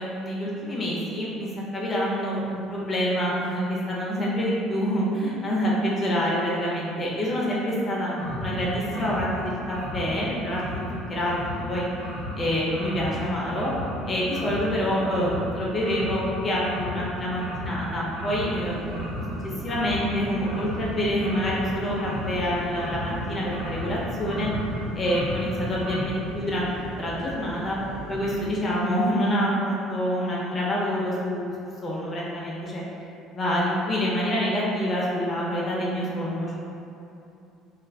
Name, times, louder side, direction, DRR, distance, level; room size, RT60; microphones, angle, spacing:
voice 1, 0.0-8.1 8.4-10.8 11.1-11.9 12.4-13.7 14.1-19.0 19.6-24.5 25.0-27.8 28.1-31.5 31.8-32.8 33.3-36.6, equal, 30° left, -5 dB, 0.5 m, -27 dB
sound 1, 8.2-26.0, equal, 65° right, 1.1 m, -34 dB
sound 2, 18.6-28.5, equal, 30° right, 1.1 m, -39 dB
3.0 x 2.4 x 2.2 m, 2.6 s
figure-of-eight pair, 60°, 0 cm